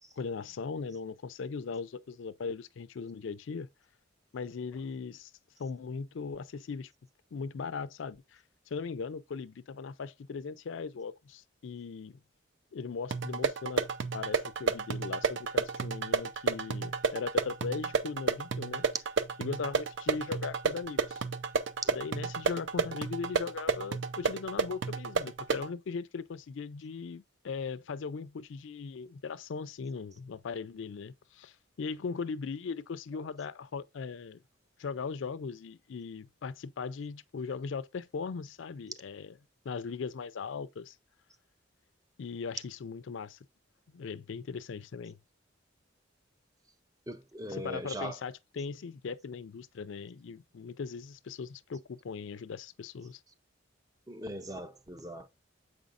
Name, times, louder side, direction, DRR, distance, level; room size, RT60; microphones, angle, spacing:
voice 1, 0.2-3.7 4.3-5.3 5.6-6.9 7.3-12.2 12.7-13.8 14.1-18.8 19.4-21.2 22.0-34.4 34.8-39.3 39.6-41.0 42.2-43.4 43.9-45.2 47.6-53.2, left 5 dB, 75° left, 0.4 m, -39 dB
sound 1, 13.1-25.7, right 5 dB, 70° right, 0.6 m, -32 dB
voice 2, 47.1-48.2 54.1-55.3, right 1 dB, 20° right, 0.5 m, -40 dB
7.7 x 5.2 x 2.5 m
head